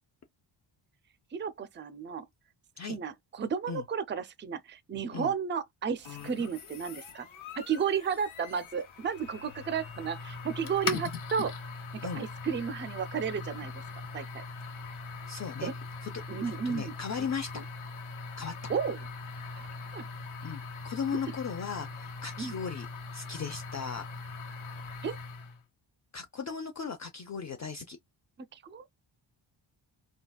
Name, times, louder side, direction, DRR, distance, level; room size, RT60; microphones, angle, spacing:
voice 1, 1.3-2.2 2.9-7.3 7.6-11.5 11.9-13.7 14.1-14.4 15.6-15.7 16.3-16.9 18.7-19.0 19.6-19.7 19.9-20.1 22.4-22.5 25.0-25.2 28.5-28.9, right 6 dB, 25° right, 0.4 m, -33 dB
sound 1, 6.0-25.6, left 4 dB, 75° left, 1.3 m, -41 dB
voice 2, 15.3-15.7 16.0-16.1 16.4-17.6 18.4-18.5 20.4-22.9 23.1-24.0 26.1-28.0, left 6 dB, 35° left, 0.6 m, -37 dB
3.9 x 2.3 x 2.3 m
wide cardioid pair, 100°, 48 cm